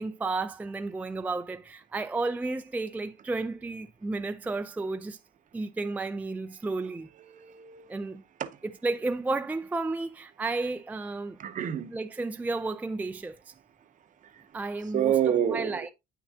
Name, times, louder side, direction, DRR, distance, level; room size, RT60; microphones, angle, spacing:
voice 1, 0.0-5.2 5.5-7.1 7.9-8.2 8.8-11.4 11.9-13.4 14.5-15.1 15.5-15.9, right 3 dB, 10° right, 0.4 m, -32 dB
voice 2, 7.2-8.0 8.4-8.6 11.4-11.9 14.2-14.4 14.9-15.9, right 9 dB, 50° right, 0.8 m, -28 dB
8.5 x 6.0 x 2.7 m
cardioid pair, 110°, 17 cm